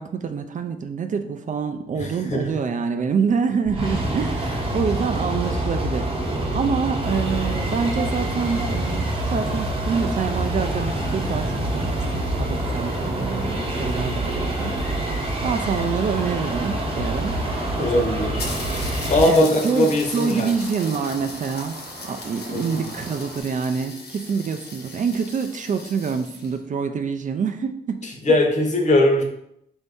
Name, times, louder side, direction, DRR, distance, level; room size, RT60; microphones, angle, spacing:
voice 1, 0.0-6.1 6.5-15.1 15.4-17.4 17.8-18.1 19.2-21.8 22.1-28.0, right 6 dB, 50° right, 7 dB, 0.4 m, -26 dB
voice 2, 2.0-2.5 17.8-18.5 19.1-20.5 22.5-22.8 28.2-29.2, left 1 dB, 45° left, 2 dB, 0.8 m, -20 dB
sound 1, 3.6-19.3, right 1 dB, 35° right, 0.9 m, -26 dB
sound 2, 7.0-23.4, right 3 dB, 70° right, 0.7 m, -40 dB
sound 3, 13.6-16.2 17.1-17.2 17.4-17.5 17.8-17.9 18.4-26.6, left 3 dB, 85° left, 0.7 m, -38 dB
4.1 x 2.6 x 3.5 m, 0.75 s
wide cardioid pair, 115°, 16 cm